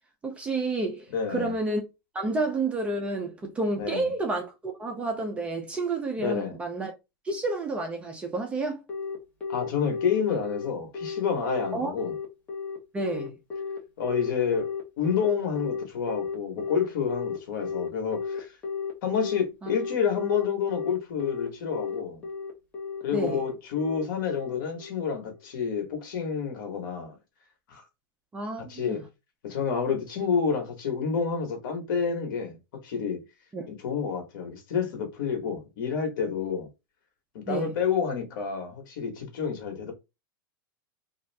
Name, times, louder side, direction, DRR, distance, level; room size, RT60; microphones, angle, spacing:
voice 1, 0.2-1.8 2.1-6.9 7.3-8.8 11.7-11.9 12.9-13.3 19.6-19.7 23.1-23.4 28.3-29.0 33.5-33.6 37.5-37.7, right 2 dB, 10° right, 0.4 m, -30 dB
voice 2, 1.1-1.5 3.8-4.1 6.2-6.6 9.5-12.1 14.0-18.5 19.0-22.2 23.0-27.2 27.7-27.8 28.7-29.0 29.4-32.6 32.8-33.2 33.7-36.7 37.3-39.9, left 6 dB, 60° left, 1.1 m, -29 dB
Telephone, 8.9-25.1, left 5 dB, 10° left, 0.8 m, -34 dB
2.6 x 2.3 x 3.2 m
supercardioid pair, 170°, 12 cm